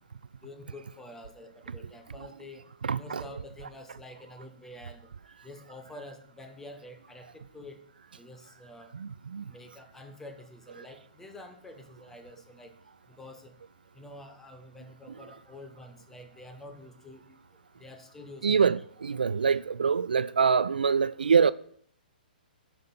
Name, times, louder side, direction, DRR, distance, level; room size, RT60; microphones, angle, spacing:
voice 1, 0.4-2.6 3.0-7.8 8.1-9.0 9.5-12.7 13.1-13.6 13.9-17.3 17.8-18.7, left 1 dB, 5° left, 1.2 m, -48 dB
voice 2, 2.9-3.2 8.9-9.4 18.4-18.8 19.1-21.5, right 6 dB, 70° right, 0.3 m, -24 dB
11.0 x 5.9 x 4.2 m
figure-of-eight pair, 120°, 5 cm